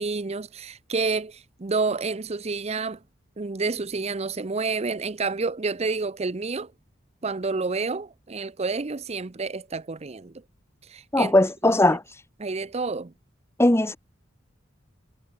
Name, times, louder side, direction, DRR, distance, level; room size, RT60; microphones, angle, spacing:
voice 1, 0.0-3.0 3.4-6.7 7.2-10.3 10.9-11.3 11.6-11.8 12.4-13.1, right 4 dB, 35° right, 0.6 m, -29 dB
voice 2, 11.1-12.2 13.6-14.0, left 1 dB, 15° left, 1.0 m, -19 dB
head